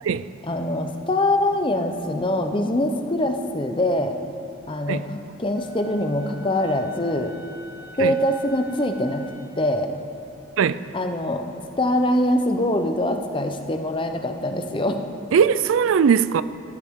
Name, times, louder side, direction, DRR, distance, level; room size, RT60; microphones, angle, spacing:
voice 1, 0.5-4.1 4.7-7.3 8.0-9.2 9.6-9.9 10.9-11.4 11.8-15.0, left 1 dB, 25° left, 0.7 m, -23 dB
Wind instrument woodwind instrument, 5.5-9.6, left 1 dB, 60° right, 2.5 m, -46 dB
voice 2, 15.3-16.4, right 7 dB, 85° right, 0.4 m, -19 dB
15.5 x 14.0 x 3.7 m
head